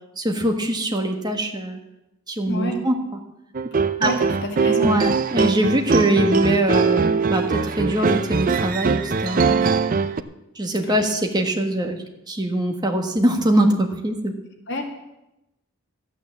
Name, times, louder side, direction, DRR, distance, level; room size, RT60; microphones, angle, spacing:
voice 1, 0.2-1.8 2.3-3.0 4.0-4.1 4.8-9.8 10.5-12.0 12.3-14.3, right 1 dB, 20° right, 3 dB, 1.5 m, -22 dB
voice 2, 2.5-2.8 4.0-4.9 10.8-11.0 14.7-14.8, left 1 dB, 55° left, 3 dB, 2.0 m, -28 dB
sound 1, 3.5-10.2, right 5 dB, 40° right, 0.5 m, -21 dB
13.0 x 9.3 x 7.2 m, 0.92 s
head